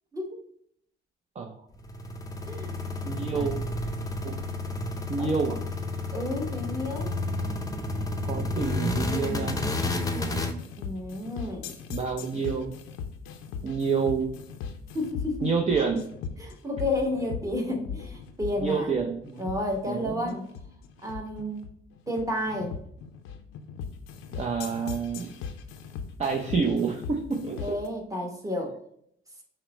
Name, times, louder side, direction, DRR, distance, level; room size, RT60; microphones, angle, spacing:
sound 1, 1.7-10.5, left 2 dB, 15° left, 0.5 m, -31 dB
voice 1, 3.0-3.6 4.2-4.4 5.1-5.6 8.2-9.6 11.9-12.7 13.6-14.3 15.4-16.1 18.6-19.4 19.9-20.3 24.3-25.3 26.2-27.8, right 5 dB, 35° right, 1 dB, 0.6 m, -28 dB
voice 2, 6.1-7.1 10.8-11.7 14.9-15.5 16.4-18.9 19.4-20.4 21.0-21.6 22.1-22.8 27.6-28.7, left 1 dB, 15° right, 1 dB, 1.1 m, -31 dB
sound 2, 10.6-27.9, left 6 dB, 85° left, 0.5 m, -39 dB
5.9 x 2.1 x 4.2 m, 0.69 s
cardioid pair, 90°, 20 cm